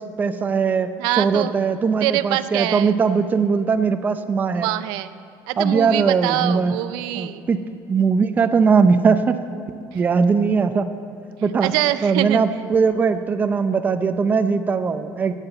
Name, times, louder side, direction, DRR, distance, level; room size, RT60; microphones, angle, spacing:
voice 1, 0.0-4.7 5.6-6.8 7.2-7.6 7.9-9.4 9.9-10.9 11.4-11.7 12.0-15.3, right 5 dB, 25° right, 9 dB, 0.6 m, -20 dB
voice 2, 1.0-1.6 2.0-2.9 4.6-5.1 5.5-7.4 9.9-10.0 11.6-12.4, right 15 dB, 85° right, 13 dB, 0.4 m, -24 dB
11.5 x 9.0 x 7.9 m, 2.7 s
cardioid pair, 150°, 7 cm